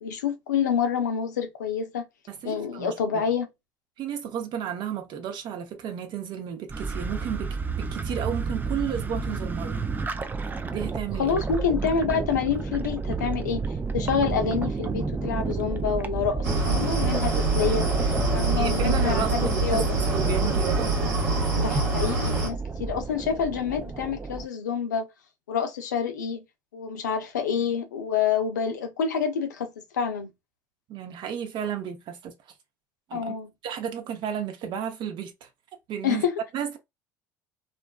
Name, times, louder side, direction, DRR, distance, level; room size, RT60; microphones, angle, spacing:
voice 1, 0.0-2.1 2.4-3.5 11.2-19.8 21.5-25.1 25.5-26.4 26.7-30.3 33.1-33.5 36.0-36.4, left 7 dB, 90° left, 0.5 m, -27 dB
voice 2, 2.3-3.0 4.0-9.8 10.7-11.4 18.6-19.8 20.1-20.9 30.9-32.3 33.1-33.3 33.6-35.5 35.9-36.2 36.5-36.8, right 8 dB, 55° right, 0.7 m, -33 dB
sound 1, 6.7-24.5, right 4 dB, 20° right, 0.4 m, -31 dB
sound 2, 16.4-22.5, right 3 dB, 75° right, 1.2 m, -25 dB
2.5 x 2.3 x 2.2 m
hypercardioid pair, 70°, 9 cm